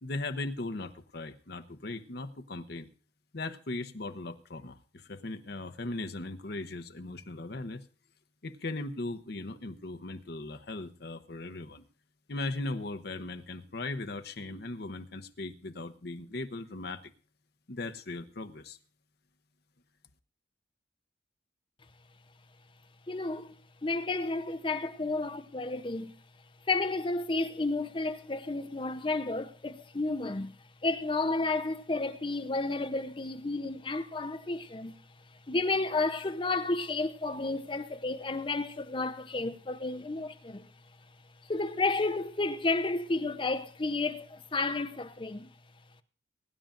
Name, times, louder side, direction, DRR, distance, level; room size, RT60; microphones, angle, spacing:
voice 1, 0.0-2.9 3.3-7.8 8.4-11.8 12.3-17.0 17.7-18.8, left 2 dB, 60° left, 0.9 m, -38 dB
voice 2, 23.1-23.5 23.8-26.1 26.7-30.5 30.8-35.0 35.5-40.7 41.5-45.5, left 3 dB, 25° left, 0.7 m, -31 dB
22.0 x 10.5 x 2.5 m
head